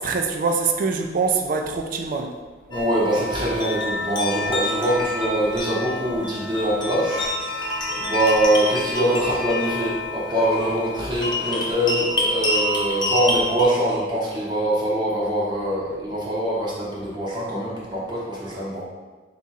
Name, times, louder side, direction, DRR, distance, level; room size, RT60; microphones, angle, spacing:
voice 1, 0.0-2.3, right 4 dB, 50° right, 3 dB, 0.3 m, -24 dB
sound 1, 2.7-13.6, left 1 dB, 25° left, 0.6 m, -27 dB
voice 2, 2.7-18.8, right 1 dB, 25° right, -6 dB, 0.7 m, -23 dB
4.0 x 2.4 x 4.0 m, 1.3 s
head